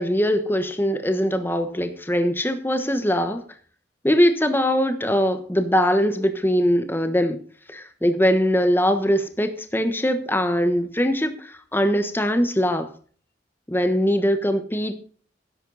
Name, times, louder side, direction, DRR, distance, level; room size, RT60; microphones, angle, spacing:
voice 1, 0.0-3.4 4.0-7.4 7.7-12.9 13.7-15.0, equal, 10° left, 1.2 m, -21 dB
12.5 x 10.5 x 4.0 m
head